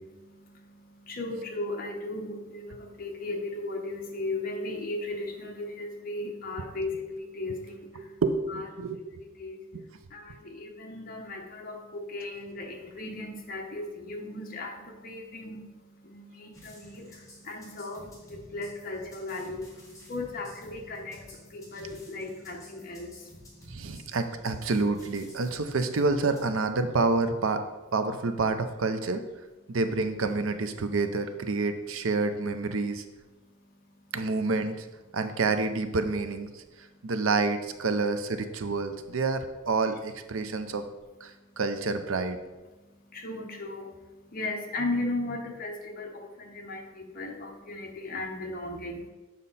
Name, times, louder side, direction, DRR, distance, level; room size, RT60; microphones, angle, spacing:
voice 1, 1.1-7.9 8.5-8.6 9.2-9.6 10.1-15.6 16.0-19.7 20.1-21.2 21.5-23.1 43.1-43.9 44.3-49.0, left 2 dB, 45° left, 2 dB, 1.1 m, -36 dB
voice 2, 8.0-9.0 9.7-9.8 23.7-27.6 27.9-29.3 29.7-33.0 34.1-34.9 35.1-36.6 37.0-40.8 41.2-42.4, right 3 dB, 85° right, 9 dB, 0.6 m, -28 dB
sound 1, 16.5-26.5, left 1 dB, 15° left, 1.9 m, -52 dB
7.4 x 5.4 x 4.1 m, 1.1 s
head